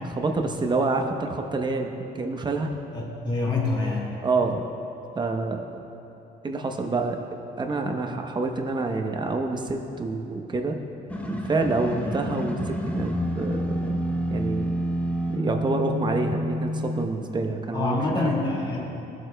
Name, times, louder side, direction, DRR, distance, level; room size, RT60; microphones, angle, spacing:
voice 1, 0.2-2.7 4.2-4.6 5.1-5.6 6.4-7.2 7.6-10.8 11.3-14.0 14.3-14.7 15.3-18.1, right 3 dB, 25° right, 3 dB, 0.8 m, -27 dB
voice 2, 2.9-4.2 12.0-12.1 17.7-18.8, left 3 dB, 30° left, -3 dB, 2.1 m, -26 dB
sound 1, 11.1-17.1, equal, 10° left, 0.9 m, -29 dB
17.0 x 7.8 x 2.2 m, 2.9 s
cardioid pair, 110°, 17 cm